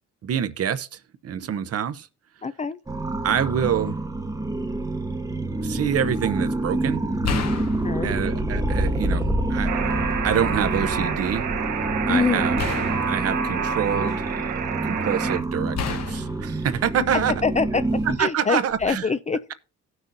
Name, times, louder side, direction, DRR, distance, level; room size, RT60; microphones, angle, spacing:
voice 1, 0.2-2.1 3.2-4.0 5.6-7.0 8.0-9.7 10.2-11.5 12.1-12.6 13.1-14.2 14.8-17.3 18.2-19.1, right 8 dB, 50° right, 0.7 m, -26 dB
voice 2, 2.4-2.8 7.8-8.2 12.1-12.5 17.3-17.8 18.2-19.5, left 5 dB, 25° left, 0.4 m, -25 dB
sound 1, 2.9-18.2, right 2 dB, 10° right, 0.9 m, -27 dB
sound 2, 5.4-5.7 7.2-9.1 9.5-10.5 12.6-14.5 15.7-17.6 18.7-18.9, left 6 dB, 60° left, 1.1 m, -33 dB
Alarm, 9.7-15.4, right 7 dB, 75° right, 1.1 m, -28 dB
16.5 x 6.1 x 2.6 m
cardioid pair, 90°, 30 cm